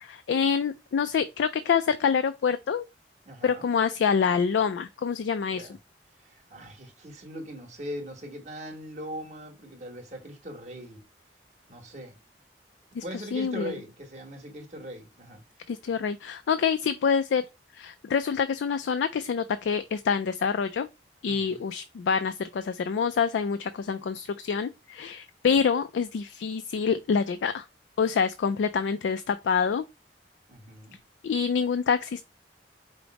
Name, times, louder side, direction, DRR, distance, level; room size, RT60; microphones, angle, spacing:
voice 1, 0.0-2.8 3.4-5.7 12.9-13.0 13.3-13.7 15.7-17.4 17.7-20.9 21.2-27.6 28.0-29.8 31.2-32.2, left 6 dB, 80° left, 0.3 m, -26 dB
voice 2, 3.2-3.7 5.5-5.8 6.2-11.0 11.7-12.2 13.0-15.4 21.2-21.7 30.5-31.0, equal, 40° right, 1.3 m, -40 dB
5.1 x 2.0 x 4.6 m
head